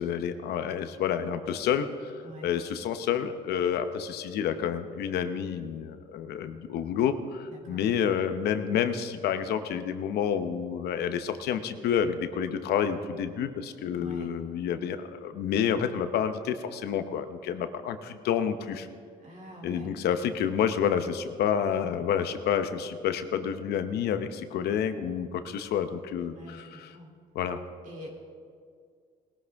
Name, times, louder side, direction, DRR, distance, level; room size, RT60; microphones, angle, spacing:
voice 1, 0.0-2.1 2.4-18.9 19.6-27.0 27.3-27.6, left 8 dB, 75° left, 9 dB, 0.9 m, -29 dB
voice 2, 2.2-2.5 7.5-7.8 13.9-14.3 19.2-19.9 26.2-27.1 27.8-28.1, equal, 50° right, 1 dB, 3.0 m, -45 dB
20.0 x 13.0 x 3.5 m, 2.1 s
cardioid pair, 110°, 17 cm